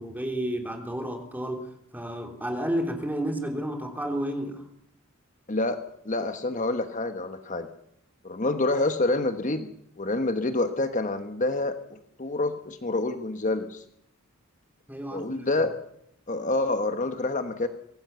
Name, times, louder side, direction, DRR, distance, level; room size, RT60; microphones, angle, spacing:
voice 1, 0.0-4.6 14.9-15.5, right 1 dB, 10° right, 4 dB, 3.1 m, -31 dB
voice 2, 5.5-7.7 8.2-9.7 10.0-13.8 15.1-15.7 16.3-17.7, left 2 dB, 35° left, 8 dB, 1.2 m, -27 dB
24.0 x 17.5 x 6.9 m, 0.73 s
head